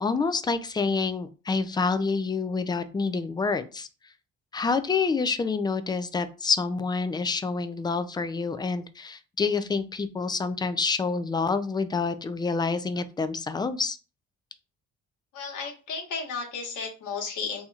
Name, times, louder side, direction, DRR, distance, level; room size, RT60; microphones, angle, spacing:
voice 1, 0.0-3.9 4.5-14.0, left 4 dB, 15° left, 11 dB, 0.3 m, -27 dB
voice 2, 15.3-17.7, left 5 dB, 80° left, 0 dB, 1.3 m, -34 dB
4.0 x 2.9 x 2.4 m, 0.33 s
cardioid pair, 90°, 30 cm